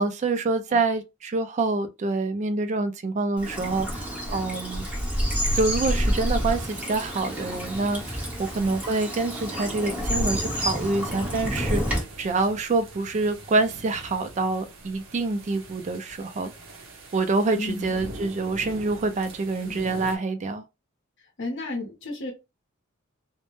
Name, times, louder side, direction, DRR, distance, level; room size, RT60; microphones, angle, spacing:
voice 1, 0.0-4.9 5.5-16.5 17.1-20.6, right 3 dB, 35° right, 0.3 m, -26 dB
Bird vocalization bird call bird song / Stream, 3.4-12.0, equal, 5° right, 0.8 m, -28 dB
sound 1, 6.2-20.2, right 2 dB, 65° right, 0.7 m, -44 dB
voice 2, 17.5-17.9 19.6-19.9 21.2-22.3, left 2 dB, 60° left, 0.7 m, -34 dB
2.1 x 2.0 x 3.0 m
head